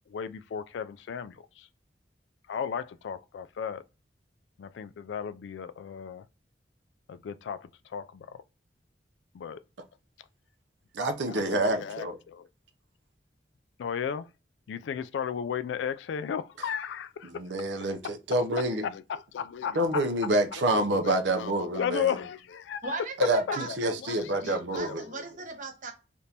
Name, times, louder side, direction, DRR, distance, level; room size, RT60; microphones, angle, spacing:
voice 1, 0.1-1.7 2.5-3.8 4.6-6.2 7.1-8.4 9.3-9.6 11.3-12.4 13.8-14.3 14.7-17.4 18.8-20.1 20.6-23.8 24.0-25.2, left 7 dB, 85° left, 0.3 m, -35 dB
voice 2, 10.9-12.2 17.2-18.8 19.7-22.2 23.2-25.0, right 1 dB, 90° right, 0.6 m, -27 dB
voice 3, 22.8-25.9, right 3 dB, 50° right, 0.9 m, -39 dB
3.5 x 2.5 x 2.8 m
head